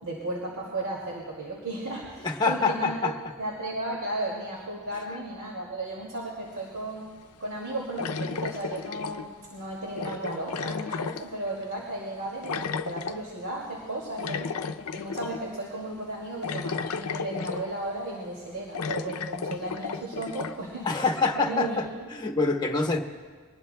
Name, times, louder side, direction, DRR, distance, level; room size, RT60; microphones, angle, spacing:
voice 1, 0.0-3.0 3.4-7.1 7.4-14.5 14.9-20.9 21.3-22.1, right 2 dB, 75° right, -3 dB, 2.4 m, -34 dB
voice 2, 2.2-3.1 20.8-21.9 22.1-23.0, left 4 dB, 20° left, 3 dB, 1.0 m, -25 dB
sound 1, 6.6-6.7 8.0-9.5 10.0-11.7 12.4-13.2 14.2-15.4 15.8-15.9 16.4-17.9 18.3-18.4 18.7-20.6, left 5 dB, 85° left, 0.5 m, -33 dB
23.5 x 19.5 x 2.2 m, 1.5 s
head